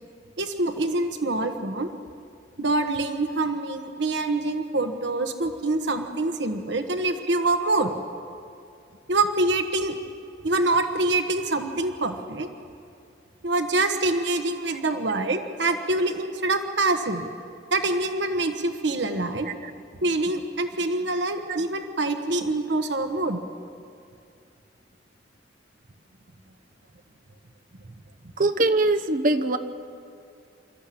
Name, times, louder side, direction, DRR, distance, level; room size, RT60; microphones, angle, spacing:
voice 1, 0.4-1.9 2.6-7.9 9.1-10.0 10.4-12.5 13.4-17.3 17.7-19.5 20.0-23.4, right 2 dB, 75° right, 6 dB, 1.2 m, -25 dB
voice 2, 28.4-29.6, right 2 dB, 50° right, 8 dB, 1.0 m, -22 dB
26.0 x 14.0 x 8.6 m, 2.4 s
head